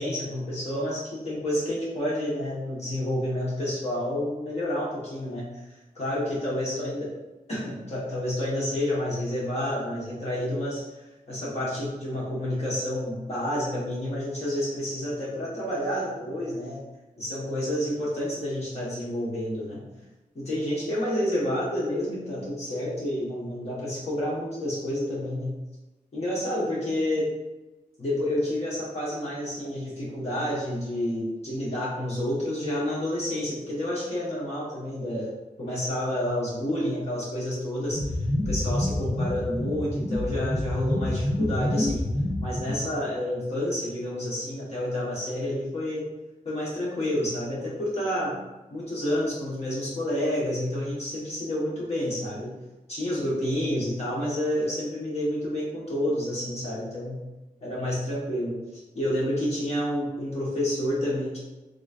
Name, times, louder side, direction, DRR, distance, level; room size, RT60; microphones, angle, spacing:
voice 1, 0.0-5.5 6.0-7.1 7.5-10.8 11.3-16.8 17.2-19.8 20.3-25.6 26.1-27.3 28.0-35.3 35.6-38.0 38.5-42.0 42.4-46.0 46.4-48.4 48.7-52.5 52.9-57.2 57.6-58.6 58.9-61.4, left 1 dB, 45° left, -8 dB, 1.2 m, -29 dB
sound 1, 37.9-42.9, left 1 dB, 10° left, 0.3 m, -28 dB
3.8 x 3.0 x 2.4 m, 1.1 s
wide cardioid pair, 130°, 15 cm